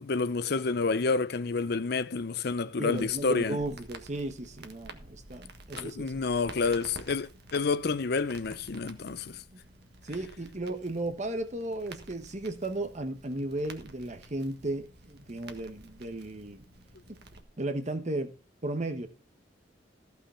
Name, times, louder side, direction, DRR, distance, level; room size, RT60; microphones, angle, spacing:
voice 1, 0.0-3.6 5.8-9.4, left 4 dB, 60° left, 0.6 m, -29 dB
voice 2, 2.8-6.2 10.0-16.6 17.1-17.2 17.6-18.3 18.6-19.1, right 2 dB, 40° right, 1.2 m, -35 dB
Crackle, 2.9-17.4, right 2 dB, 60° right, 1.6 m, -50 dB
15.0 x 5.9 x 5.6 m
head